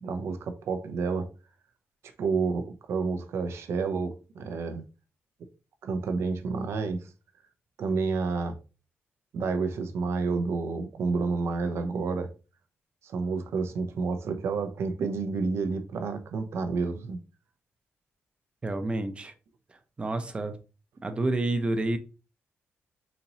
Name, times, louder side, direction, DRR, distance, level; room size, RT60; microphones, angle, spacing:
voice 1, 0.0-1.3 2.2-4.8 5.8-7.1 7.8-8.6 9.3-12.3 13.0-17.2, right 4 dB, 75° right, 0.6 m, -29 dB
voice 2, 18.6-19.3 19.7-20.6 21.0-22.0, right 2 dB, 25° right, 0.5 m, -29 dB
4.0 x 2.9 x 2.7 m
cardioid pair, 125°, 5 cm